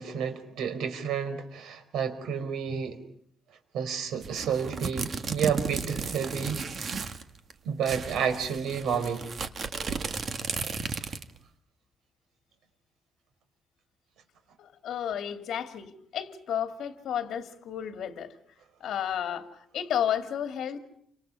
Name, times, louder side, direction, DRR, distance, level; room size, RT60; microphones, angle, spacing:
voice 1, 0.0-3.0 3.7-6.6 7.6-9.2, right 7 dB, 85° right, 7 dB, 4.8 m, -30 dB
sound 1, 4.2-7.2 7.5-7.6 7.8-11.4, right 5 dB, 40° right, 1.8 m, -34 dB
voice 2, 14.6-18.3 18.8-19.5 19.7-20.8, left 9 dB, 65° left, 6 dB, 2.4 m, -32 dB
29.5 x 26.5 x 5.6 m, 0.67 s
cardioid pair, 145°, 0 cm